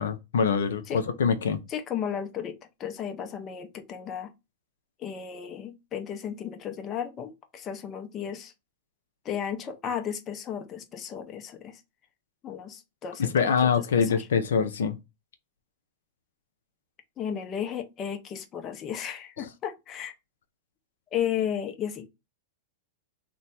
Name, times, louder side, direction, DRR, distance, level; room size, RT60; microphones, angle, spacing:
voice 1, 0.0-1.6 13.2-15.0, left 6 dB, 85° left, 0.5 m, -24 dB
voice 2, 1.7-4.3 5.0-8.5 9.2-11.8 12.4-14.2 17.2-20.1 21.1-22.1, left 8 dB, 30° left, 0.6 m, -34 dB
3.1 x 2.2 x 4.1 m
hypercardioid pair, 125°, 0 cm